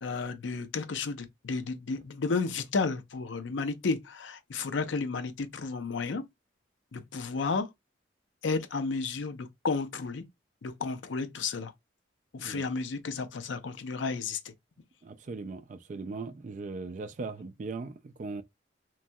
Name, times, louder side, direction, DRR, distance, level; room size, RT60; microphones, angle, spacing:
voice 1, 0.0-6.2 6.9-7.7 8.4-10.2 10.6-11.7 12.3-14.4, left 4 dB, 80° left, 0.5 m, -32 dB
voice 2, 15.0-18.4, right 3 dB, 40° right, 0.3 m, -39 dB
3.1 x 2.2 x 2.6 m
head